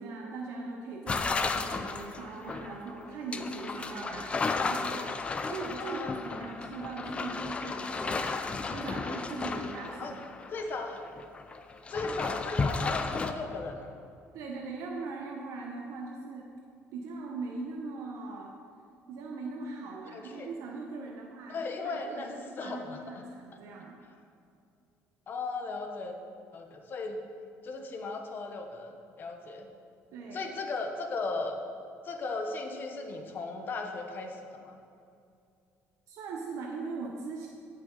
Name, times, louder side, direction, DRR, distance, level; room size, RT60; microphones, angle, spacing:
voice 1, 0.0-5.1 5.5-10.2 14.3-16.5 16.9-18.5 19.1-21.6 21.8-24.0 30.1-30.4 36.1-37.5, right 3 dB, 70° right, -1 dB, 1.0 m, -40 dB
sound 1, 1.1-10.8 11.0-13.3, left 4 dB, 20° left, 0.5 m, -34 dB
voice 2, 5.8-6.5 10.0-10.1 10.5-11.0 11.9-13.9 20.1-20.5 21.5-23.2 25.3-26.2 26.5-27.2 27.6-29.7 30.3-31.5 32.0-34.8, left 3 dB, 40° left, 4 dB, 1.1 m, -36 dB
16.0 x 5.7 x 4.1 m, 2.5 s
cardioid pair, 135°, 5 cm